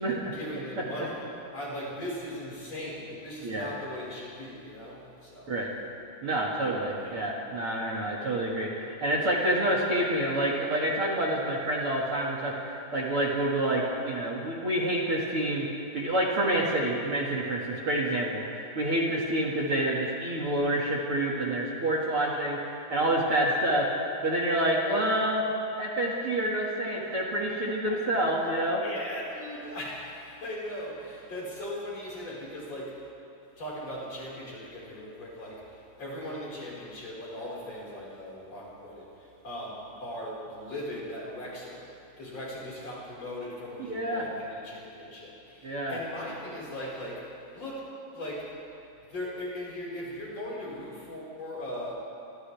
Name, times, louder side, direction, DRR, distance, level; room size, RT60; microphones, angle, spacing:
voice 1, 0.0-5.5 7.0-7.2 8.2-8.4 27.8-28.0 28.8-33.1 33.6-41.9 42.2-47.8 48.1-48.5 49.1-51.9, left 1 dB, 50° left, -5 dB, 6.3 m, -39 dB
voice 2, 6.2-15.7 15.9-23.9 24.2-25.5 25.8-28.8 43.8-44.2 45.6-46.0, right 1 dB, 45° right, -4 dB, 2.9 m, -28 dB
28.5 x 25.5 x 3.6 m, 2.6 s
omnidirectional pair, 3.9 m